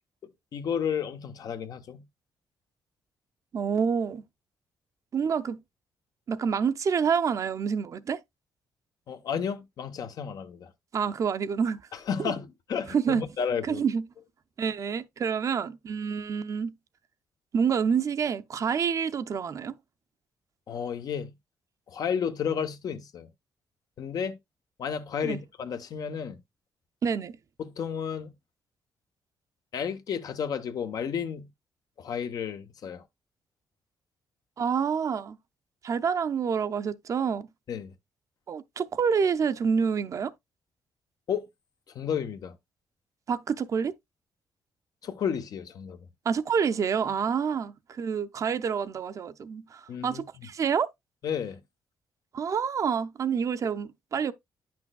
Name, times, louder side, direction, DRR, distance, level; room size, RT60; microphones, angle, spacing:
voice 1, 0.2-2.0 9.1-10.7 11.9-13.8 20.7-21.3 21.9-23.3 24.0-24.4 24.8-26.4 27.6-28.3 29.7-31.5 32.0-33.0 37.7-37.9 41.3-41.5 41.9-42.5 45.0-46.0 49.9-50.5 51.2-51.6, left 7 dB, 60° left, 0.9 m, -32 dB
voice 2, 3.5-4.2 5.1-5.6 6.3-8.2 10.9-11.8 12.2-12.3 12.9-13.2 13.7-14.0 14.6-16.7 17.5-19.7 25.2-25.4 27.0-27.4 34.6-35.4 35.8-37.5 38.5-40.3 43.3-43.9 46.3-50.9 52.3-54.3, right 6 dB, 50° right, 0.5 m, -27 dB
10.0 x 6.0 x 2.3 m
cardioid pair, 105°, 7 cm